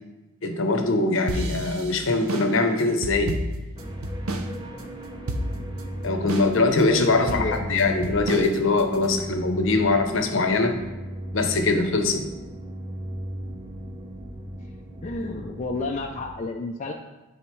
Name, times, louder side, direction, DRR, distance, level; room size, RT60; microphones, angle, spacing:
voice 1, 0.4-3.4 6.0-10.8 11.3-12.3, left 3 dB, 60° left, 5 dB, 0.7 m, -22 dB
sound 1, 1.3-4.5 4.8-4.9 5.3-5.8 6.3-6.8 7.3-9.1, right 1 dB, 75° right, 0.6 m, -30 dB
sound 2, 3.8-16.3, right 1 dB, 20° right, 0.6 m, -36 dB
voice 2, 6.9-7.6 15.0-16.9, left 2 dB, 35° left, 1 dB, 0.3 m, -30 dB
10.0 x 3.9 x 3.1 m, 1.1 s
head